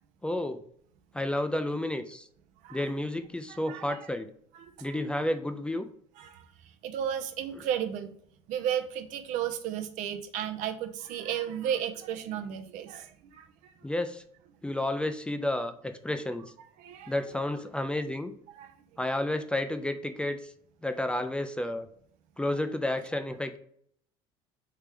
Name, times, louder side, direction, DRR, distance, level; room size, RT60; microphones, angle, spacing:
voice 1, 0.2-0.6 1.1-2.3 2.7-4.3 4.8-5.9 7.6-7.7 13.8-14.2 14.6-16.4 17.1-18.3 19.0-20.5 20.8-21.9 22.4-23.6, left 1 dB, 5° left, 8 dB, 0.4 m, -31 dB
voice 2, 3.5-4.0 4.6-5.0 6.2-6.4 6.8-8.1 8.5-13.7 16.8-17.1 18.6-18.7, right 9 dB, 65° right, 8 dB, 0.6 m, -34 dB
3.4 x 3.2 x 4.9 m, 0.64 s
supercardioid pair, 100°, 14 cm